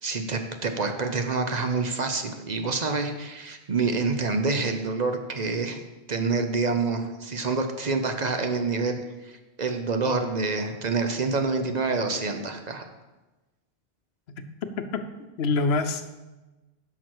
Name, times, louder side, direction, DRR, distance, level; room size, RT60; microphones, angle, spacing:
voice 1, 0.0-5.8 6.1-12.8, right 4 dB, 45° right, 6 dB, 0.8 m, -27 dB
voice 2, 14.8-16.1, left 3 dB, 90° left, 9 dB, 1.0 m, -27 dB
10.5 x 6.0 x 4.7 m, 1.1 s
omnidirectional pair, 1.0 m